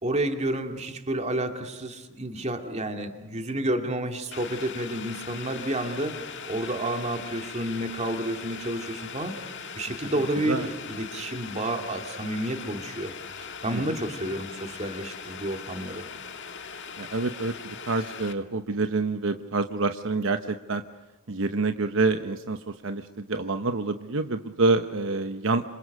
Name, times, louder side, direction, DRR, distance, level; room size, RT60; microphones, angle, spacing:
voice 1, 0.0-6.2 6.5-13.1 13.6-16.0, right 1 dB, 30° right, 5 dB, 2.4 m, -30 dB
Boiling, 4.3-18.3, left 6 dB, 55° left, 1.9 m, -40 dB
voice 2, 17.0-20.8 21.3-25.6, right 3 dB, 60° right, 8 dB, 0.9 m, -27 dB
28.5 x 26.5 x 6.6 m, 1.1 s
head